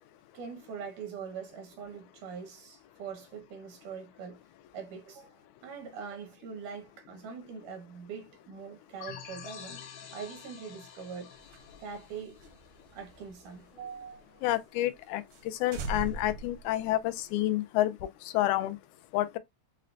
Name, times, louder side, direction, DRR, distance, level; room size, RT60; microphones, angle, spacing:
voice 1, 0.3-4.4 4.7-9.8 10.1-11.3 11.8-12.4 12.9-14.4, right 6 dB, 90° right, 2.7 m, -43 dB
sound 1, 9.0-13.5, left 7 dB, 70° left, 2.0 m, -48 dB
sound 2, 11.4-14.2 14.5-14.6 15.0-15.1 15.3-15.5 15.7-17.4, right 2 dB, 75° right, 1.3 m, -41 dB
voice 2, 14.4-15.2 15.6-17.9 18.3-18.8 19.1-19.4, left 15 dB, 85° left, 2.0 m, -28 dB
6.4 x 2.2 x 2.4 m
omnidirectional pair, 3.4 m